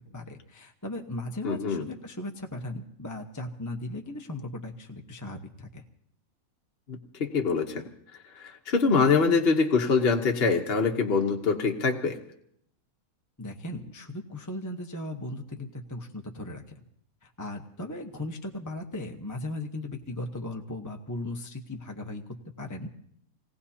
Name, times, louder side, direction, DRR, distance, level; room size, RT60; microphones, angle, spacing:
voice 1, 0.1-5.8 13.4-16.6 17.2-22.2 22.6-22.9, left 1 dB, 15° left, 2 dB, 0.9 m, -37 dB
voice 2, 1.4-1.8 7.2-7.8 8.4-12.2, left 4 dB, 40° left, 4 dB, 1.2 m, -24 dB
26.5 x 18.5 x 2.8 m, 0.70 s
omnidirectional pair, 1.7 m